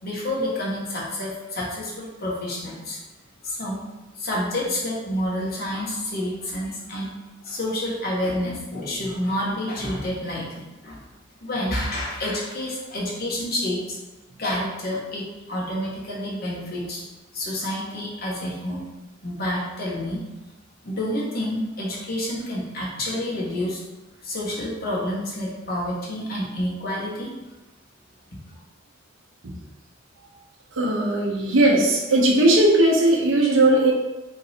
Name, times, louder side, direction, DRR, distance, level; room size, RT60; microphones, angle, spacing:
voice 1, 0.0-3.0 3.4-3.8 4.1-7.1 7.4-11.0 11.4-14.0 14.4-17.0 17.3-18.8 19.2-20.2 20.8-23.8 24.2-27.3, left 1 dB, 50° left, -5 dB, 1.2 m, -28 dB
voice 2, 30.7-33.9, right 1 dB, 70° right, -3 dB, 0.8 m, -18 dB
3.8 x 2.6 x 4.2 m, 1.1 s
head